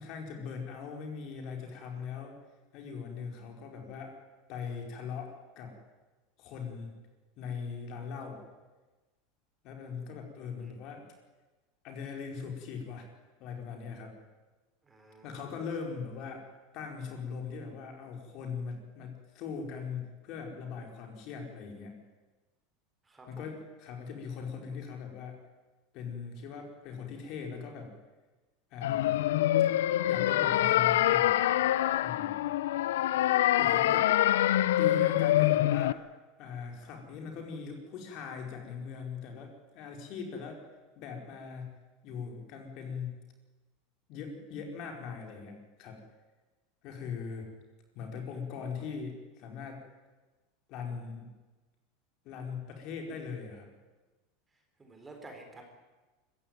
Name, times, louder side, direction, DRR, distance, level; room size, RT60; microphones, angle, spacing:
voice 1, 0.0-2.4 2.7-4.1 4.5-5.8 6.4-6.9 7.4-8.4 9.6-11.0 11.8-13.1 13.4-14.1 15.2-16.4 16.7-22.0 23.3-25.4 25.9-27.9 28.7-29.2 30.0-31.4 32.0-32.4 33.6-36.0 36.4-40.6 41.0-41.7 42.0-43.2 44.1-46.0 46.8-47.5 47.9-49.8 50.7-51.3 52.2-53.7, left 5 dB, 45° left, 3 dB, 4.9 m, -40 dB
voice 2, 14.9-15.4 23.1-23.5 54.8-55.6, right 2 dB, 15° right, 3 dB, 4.2 m, -50 dB
sound 1, 28.8-35.9, left 13 dB, 90° left, 0.7 m, -25 dB
24.5 x 15.0 x 9.3 m, 1.2 s
supercardioid pair, 150°, 0 cm